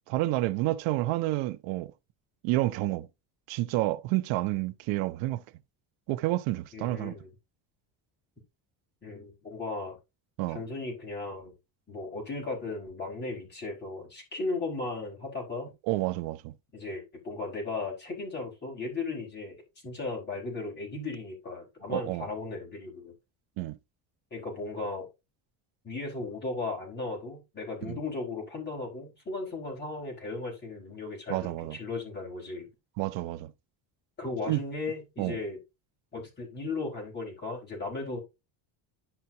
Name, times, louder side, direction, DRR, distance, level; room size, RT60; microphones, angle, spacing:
voice 1, 0.1-1.9 2.4-3.1 3.5-5.4 6.1-7.2 10.4-10.6 15.9-16.5 21.9-22.2 23.6-23.8 27.8-28.0 31.3-31.8 33.0-33.5 34.5-34.6 35.2-35.4, right 17 dB, 85° right, 0.8 m, -29 dB
voice 2, 6.7-7.3 9.0-10.0 10.5-11.5 11.9-15.7 16.7-19.6 19.8-23.1 24.3-25.1 25.8-32.7 34.2-35.6 36.1-38.2, left 3 dB, 20° left, 4.7 m, -36 dB
10.5 x 5.7 x 2.7 m
cardioid pair, 175°, 45 cm